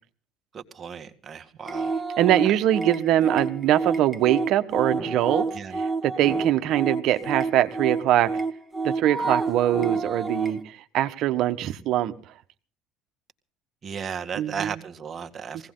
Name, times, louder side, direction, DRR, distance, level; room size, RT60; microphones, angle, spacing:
voice 1, 0.5-1.9 5.5-5.8 13.8-15.7, right 6 dB, 35° right, 1.9 m, -35 dB
sound 1, 1.6-10.6, right 3 dB, 5° right, 1.9 m, -29 dB
voice 2, 2.2-8.3 8.8-12.1 14.3-14.8 15.5-15.6, right 12 dB, 65° right, 1.4 m, -23 dB
20.0 x 17.0 x 3.9 m
supercardioid pair, 100°, 0 cm